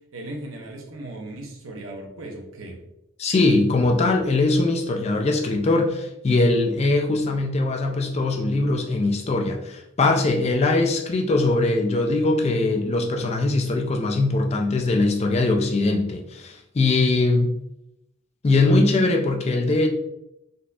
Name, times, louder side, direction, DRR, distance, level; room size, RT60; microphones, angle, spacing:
voice 1, 0.1-2.8, right 1 dB, 80° right, 1 dB, 0.7 m, -37 dB
voice 2, 3.2-17.5 18.4-19.9, left 2 dB, 30° left, 2 dB, 0.3 m, -21 dB
4.0 x 2.7 x 2.3 m, 0.85 s
head